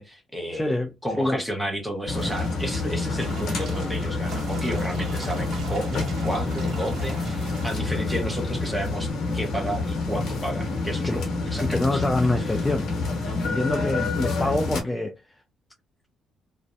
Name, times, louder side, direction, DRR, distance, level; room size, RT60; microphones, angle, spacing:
voice 1, 0.0-0.8 1.0-12.0 12.4-12.6, equal, 5° right, 0.9 m, -32 dB
voice 2, 0.5-0.9 1.2-1.4 11.0-11.2 11.6-12.9 13.4-15.1, left 2 dB, 15° left, 0.3 m, -25 dB
sound 1, 2.1-14.8, left 3 dB, 70° left, 0.9 m, -28 dB
sound 2, 2.2-9.1, right 5 dB, 65° right, 0.5 m, -42 dB
2.5 x 2.1 x 2.4 m
cardioid pair, 90°, 0 cm